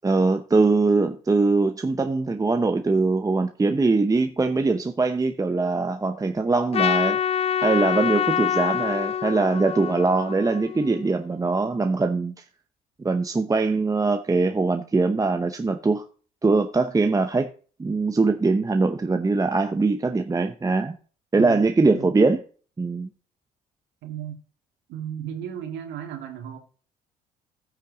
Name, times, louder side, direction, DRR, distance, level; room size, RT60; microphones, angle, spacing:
voice 1, 0.0-7.2 7.6-12.3 13.0-16.0 16.4-17.5 17.8-20.9 21.3-22.4 22.8-23.1, right 3 dB, 20° right, 0.8 m, -22 dB
Trumpet, 6.7-11.1, left 8 dB, 30° left, 0.5 m, -26 dB
voice 2, 21.4-21.7 21.9-22.1 24.0-24.4 24.9-26.6, right 10 dB, 70° right, 2.1 m, -35 dB
14.0 x 5.9 x 3.9 m
hypercardioid pair, 60°, 19 cm